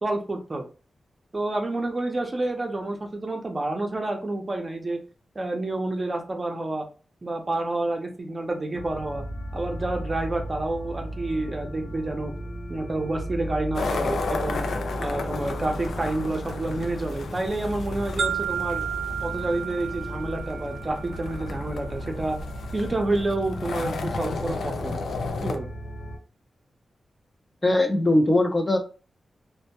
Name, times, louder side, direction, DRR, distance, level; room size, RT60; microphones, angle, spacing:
voice 1, 0.0-0.6 1.3-5.0 5.4-6.9 7.2-9.2 9.5-12.3 12.7-14.7 15.0-18.8 19.2-22.4 22.7-25.0 25.4-25.7, right 2 dB, 35° right, 3 dB, 0.6 m, -29 dB
sound 1, 8.7-26.2, right 1 dB, 65° left, 0.7 m, -36 dB
sound 2, 13.7-25.5, left 4 dB, 90° left, 0.3 m, -34 dB
sound 3, 18.2-22.2, right 8 dB, 85° right, 0.5 m, -33 dB
voice 2, 27.6-28.8, left 1 dB, 25° left, 4 dB, 0.5 m, -20 dB
2.1 x 2.1 x 2.8 m, 0.35 s
wide cardioid pair, 85°, 0 cm